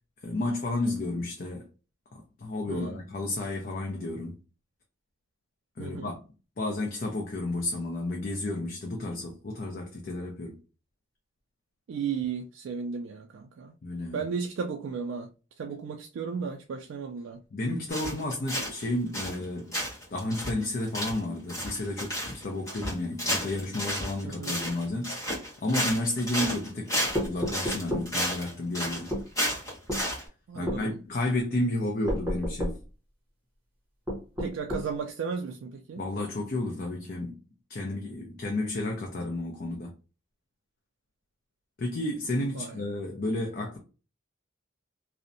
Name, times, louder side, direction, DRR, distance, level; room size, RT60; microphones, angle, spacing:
voice 1, 0.2-1.6 2.1-4.4 5.8-6.2 6.6-10.6 13.8-14.2 17.5-19.8 20.1-25.1 25.6-27.0 27.2-29.1 30.5-32.8 36.0-37.4 37.7-39.9 41.8-43.8, left 2 dB, 45° left, 0.5 m, -32 dB
voice 2, 2.7-3.0 5.8-6.1 11.9-13.7 14.1-15.3 15.6-17.4 24.2-24.6 30.5-31.0 34.4-36.0 42.5-42.8, right 6 dB, 70° right, 0.3 m, -34 dB
sound 1, 17.9-18.8 19.1-19.4 19.7-30.2, equal, 15° left, 1.1 m, -32 dB
sound 2, 27.1-28.1 29.1-29.3 29.9-30.1 30.7-30.8 32.1-32.8 34.1-34.9, equal, 10° right, 0.9 m, -31 dB
2.6 x 2.0 x 2.5 m
head